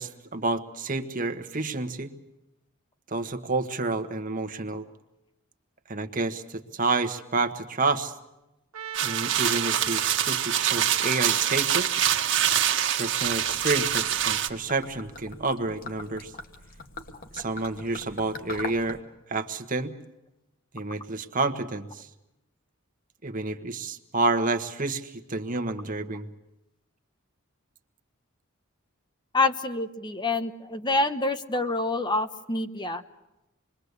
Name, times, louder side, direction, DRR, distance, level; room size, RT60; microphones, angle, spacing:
voice 1, 0.0-2.1 3.1-4.9 5.9-8.1 9.0-11.9 13.0-16.3 17.3-19.0 19.3-19.9 20.7-22.1 23.2-26.3, right 3 dB, 40° right, 8 dB, 1.4 m, -29 dB
Trumpet, 8.7-12.8, right 9 dB, 85° right, 1.4 m, -42 dB
sound 1, 8.9-14.5, right 10 dB, 60° right, 1.6 m, -25 dB
Gurgling / Liquid, 13.2-19.0, left 2 dB, 45° left, 1.9 m, -42 dB
voice 2, 29.3-33.0, left 2 dB, 20° left, 9 dB, 1.0 m, -27 dB
27.0 x 22.0 x 8.2 m, 0.93 s
head